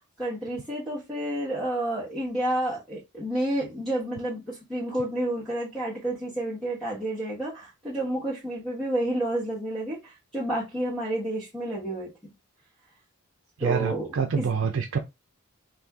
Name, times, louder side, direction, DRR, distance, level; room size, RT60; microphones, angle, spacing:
voice 1, 0.2-12.3 13.6-14.4, right 1 dB, ahead, 1.3 m, -30 dB
voice 2, 13.6-15.0, right 6 dB, 60° right, 0.5 m, -26 dB
4.2 x 2.7 x 3.5 m
head